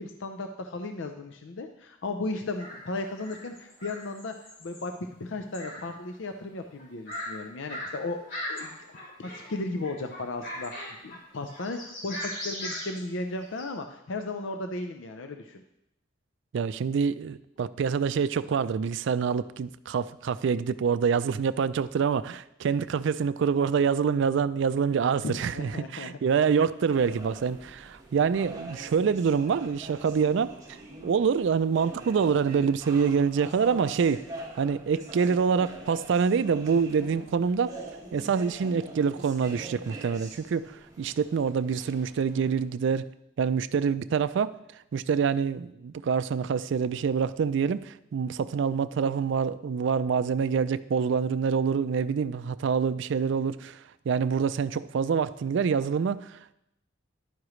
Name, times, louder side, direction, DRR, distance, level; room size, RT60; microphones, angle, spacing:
voice 1, 0.0-4.3 4.6-15.6 25.2-26.1, left 2 dB, 70° left, 0.6 m, -35 dB
sound 1, 2.6-2.9 3.2-4.9 5.5-5.9 6.1-6.2 6.8-7.3 7.7-7.9 8.3-9.6 9.8-11.2 11.5-13.6, left 1 dB, 50° left, 3.8 m, -38 dB
voice 2, 16.5-30.8 31.0-34.2 34.6-37.8 38.1-43.1 43.4-44.6 44.9-56.5, right 6 dB, 65° right, 0.4 m, -26 dB
sound 2, 26.9-42.6, right 2 dB, 20° right, 1.5 m, -45 dB
11.0 x 9.7 x 3.1 m
head